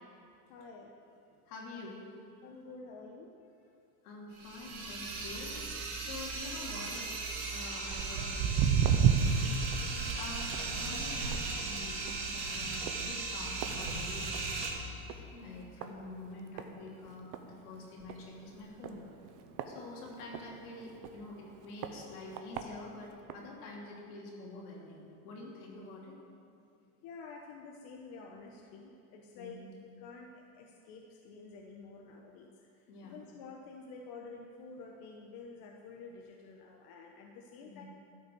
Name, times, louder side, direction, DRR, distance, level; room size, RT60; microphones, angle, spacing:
voice 1, 0.5-0.9 2.4-3.3 9.9-10.2 15.3-15.7 27.0-32.5 33.0-37.8, left 4 dB, 55° left, 0 dB, 1.2 m, -49 dB
voice 2, 1.5-2.0 4.0-7.1 7.5-14.7 15.4-19.0 19.6-26.1 29.3-29.7 32.6-33.2 37.6-37.8, left 2 dB, 80° left, -3 dB, 3.1 m, -47 dB
sound 1, 4.3-14.7, right 3 dB, 65° right, 3.0 m, -37 dB
Walk footsteps, 7.9-14.6 14.9-15.2 15.8-15.9 16.6-16.7 17.1-17.2 17.3-17.4 18.0-18.2 18.8-20.4 21.0-21.1 21.8-21.9 22.3-22.6 23.3-23.4, right 7 dB, 45° right, 0.9 m, -31 dB
12.5 x 5.7 x 7.7 m, 2.6 s
supercardioid pair, 120°, 44 cm